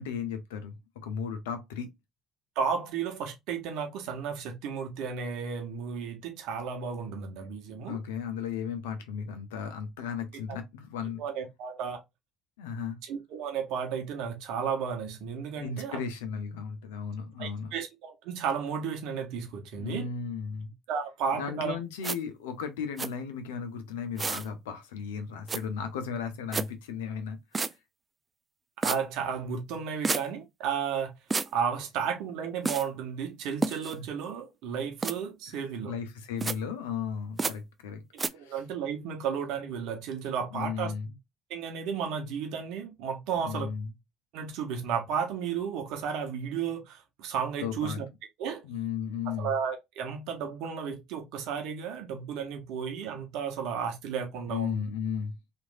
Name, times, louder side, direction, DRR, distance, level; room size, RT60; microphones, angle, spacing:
voice 1, 0.0-1.9 7.9-11.2 12.6-13.0 15.6-17.7 19.8-20.7 21.3-27.4 27.6-27.7 33.9-34.1 35.5-35.6 35.8-38.0 38.3-38.5 40.3-41.1 43.4-43.9 47.6-48.0 48.6-49.5 54.5-55.3, left 6 dB, 80° left, 0.6 m, -35 dB
voice 2, 2.6-8.0 10.5-10.6 11.2-12.0 13.0-16.0 17.4-20.1 20.9-21.8 28.8-31.1 31.5-35.9 38.1-40.9 41.5-43.7 44.3-48.1 48.4-48.6 49.3-54.8, right 7 dB, 65° right, 0.8 m, -33 dB
sound 1, 22.0-22.2 23.0-23.1 24.2-24.5 25.5-25.6 26.5-26.7 27.5-27.7 28.8-29.0 30.0-30.2 31.3-31.5 32.6-32.8 33.6-33.9 35.0-35.1 36.4-36.6 37.4-37.5 38.2-38.3, right 4 dB, 30° right, 0.3 m, -29 dB
3.0 x 2.5 x 2.5 m
hypercardioid pair, 55°, 0 cm